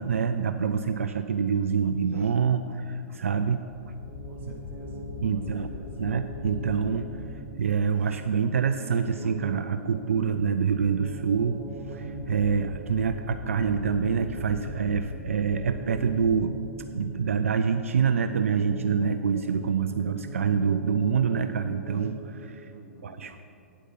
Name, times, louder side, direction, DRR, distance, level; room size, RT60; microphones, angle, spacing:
voice 1, 0.0-3.9 5.2-5.7 6.0-7.2 7.6-16.6 16.9-22.7 23.0-23.4, right 6 dB, 70° right, 9 dB, 0.4 m, -26 dB
sound 1, 3.7-7.6 10.4-17.7, left 6 dB, 50° left, 0.6 m, -41 dB
sound 2, 4.0-22.8, right 2 dB, 5° left, 1.6 m, -43 dB
voice 2, 4.2-5.0 5.3-6.0 22.7-23.3, right 2 dB, 25° right, -2 dB, 1.8 m, -51 dB
8.5 x 8.1 x 5.7 m, 2.8 s
figure-of-eight pair, 105°, 8 cm